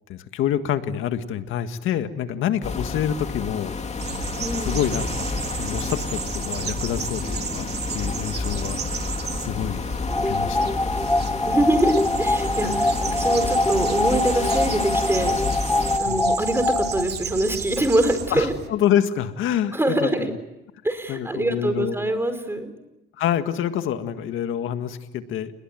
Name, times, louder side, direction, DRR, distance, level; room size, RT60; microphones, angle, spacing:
voice 1, 0.1-3.7 4.6-5.1 5.6-7.7 7.9-8.8 9.4-9.8 10.3-10.8 16.1-16.2 18.3-20.4 21.1-22.0 23.2-25.5, left 10 dB, 85° left, 9 dB, 1.8 m, -26 dB
sound 1, 2.6-16.0, left 4 dB, 35° left, 2.5 m, -30 dB
sound 2, 4.0-18.7, right 7 dB, 55° right, 2.8 m, -33 dB
voice 2, 4.4-4.8 11.4-15.3 16.0-18.5 19.7-20.3 20.8-22.7, right 1 dB, 10° right, 9 dB, 4.7 m, -24 dB
sound 3, 10.1-17.1, left 2 dB, 10° left, 1.2 m, -24 dB
29.5 x 21.0 x 9.3 m, 0.94 s
cardioid pair, 90°, 20 cm